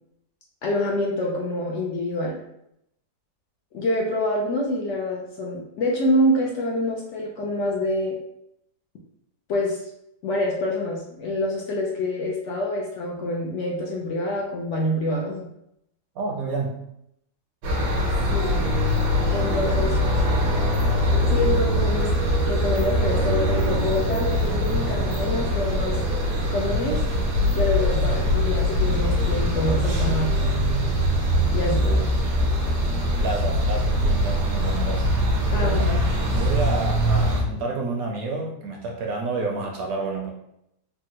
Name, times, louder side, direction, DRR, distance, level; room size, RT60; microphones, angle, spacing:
voice 1, 0.6-2.4 3.7-8.2 9.5-9.8 10.2-15.5 18.3-18.7 19.3-20.0 21.2-22.1 22.5-26.0 26.5-27.0 27.5-30.6 31.5-31.9 35.5-35.8, left 1 dB, 70° left, -2 dB, 0.7 m, -26 dB
voice 2, 16.2-16.8 31.8-32.4 33.0-35.1 35.6-40.3, right 3 dB, 70° right, 0 dB, 1.0 m, -30 dB
sound 1, 17.6-37.4, equal, 90° right, 1.4 m, -22 dB
3.5 x 2.1 x 2.8 m, 0.80 s
omnidirectional pair, 1.7 m